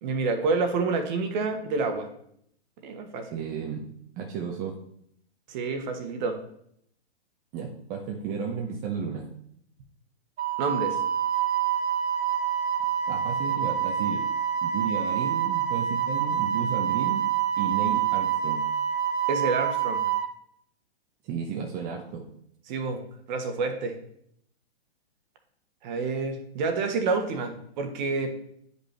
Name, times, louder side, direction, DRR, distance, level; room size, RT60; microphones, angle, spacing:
voice 1, 0.0-2.1 2.8-3.4 5.5-6.4 10.6-11.0 19.3-20.0 22.7-23.0 23.3-24.0 25.8-28.3, right 4 dB, 40° right, 5 dB, 1.3 m, -28 dB
voice 2, 3.3-3.9 4.2-4.8 7.5-9.2 13.1-14.3 14.6-17.3 17.6-18.6 21.2-22.2, right 6 dB, 25° right, 0 dB, 0.8 m, -33 dB
Wind instrument woodwind instrument, 10.4-20.3, right 9 dB, 75° right, 1.1 m, -27 dB
9.8 x 5.4 x 3.3 m, 0.69 s
hypercardioid pair, 135°, 33 cm